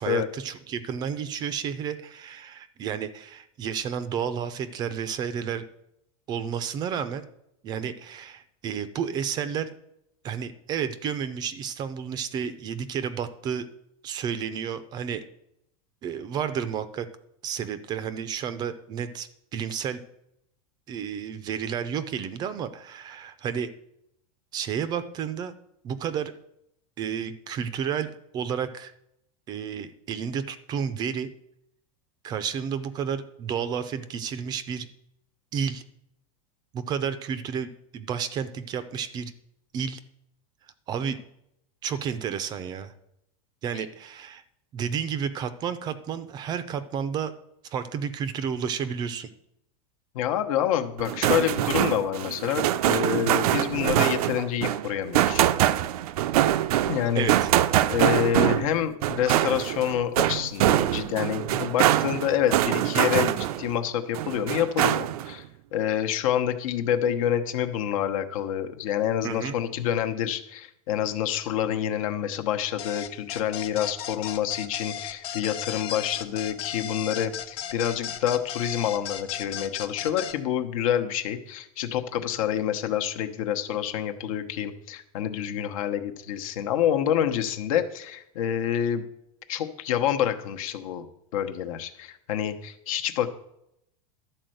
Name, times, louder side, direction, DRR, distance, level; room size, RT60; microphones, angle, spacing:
voice 1, 0.0-5.6 6.3-7.2 7.6-9.7 10.2-13.7 14.0-15.2 16.0-17.1 17.4-20.0 20.9-23.7 24.5-25.5 25.8-26.3 27.0-28.9 29.5-31.3 32.2-34.9 35.5-35.8 36.7-39.3 39.7-40.0 40.9-41.2 41.8-42.9 43.6-44.4 44.7-47.3 47.6-49.3 57.1-57.5 69.2-69.6, right 7 dB, 20° right, 12 dB, 0.5 m, -31 dB
voice 2, 50.1-55.4 56.9-57.3 57.9-65.4 65.7-89.0 89.5-91.1 91.3-93.3, left 10 dB, 65° left, 7 dB, 1.0 m, -27 dB
sound 1, 51.0-63.8 64.1-65.3, right 13 dB, 85° right, 0.5 m, -24 dB
sound 2, 72.8-80.4, left 10 dB, 30° left, 0.6 m, -36 dB
12.0 x 4.4 x 7.8 m, 0.79 s
supercardioid pair, 170°, 19 cm